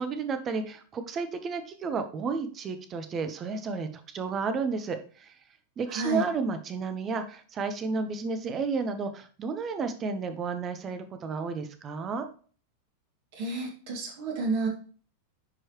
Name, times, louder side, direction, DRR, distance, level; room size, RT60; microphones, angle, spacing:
voice 1, 0.0-5.3 5.8-12.3, right 4 dB, 25° right, 9 dB, 1.1 m, -32 dB
voice 2, 5.9-6.2 13.3-14.7, right 3 dB, 50° right, 0 dB, 2.7 m, -30 dB
10.0 x 4.8 x 3.1 m, 0.42 s
figure-of-eight pair, 90°, 0 cm